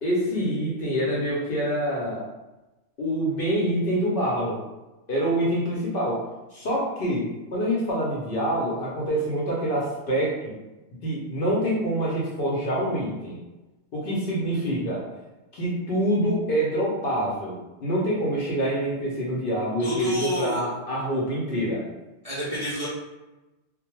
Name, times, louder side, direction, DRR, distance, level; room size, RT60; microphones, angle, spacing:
voice 1, 0.0-2.3 3.0-4.6 5.1-6.2 6.5-10.5 11.0-13.4 13.9-15.0 15.5-21.8, equal, 60° left, -5 dB, 0.6 m, -26 dB
voice 2, 19.8-20.6 22.2-22.9, equal, 50° right, -9 dB, 0.4 m, -29 dB
2.2 x 2.0 x 3.0 m, 1.1 s
omnidirectional pair, 1.3 m